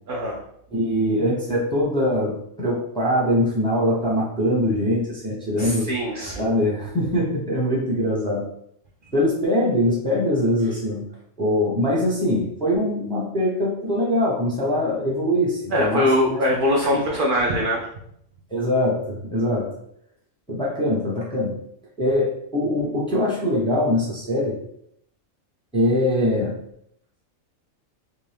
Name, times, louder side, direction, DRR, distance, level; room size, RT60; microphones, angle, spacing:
voice 1, 0.1-0.4 5.6-6.5 15.7-17.9, left 1 dB, 70° right, -1 dB, 0.5 m, -22 dB
voice 2, 0.7-5.9 6.4-8.5 9.1-11.1 11.4-16.4 18.5-19.7 20.5-21.6 22.0-24.6 25.7-26.6, left 1 dB, 5° left, -5 dB, 0.5 m, -22 dB
2.7 x 2.5 x 3.3 m, 0.72 s
omnidirectional pair, 1.4 m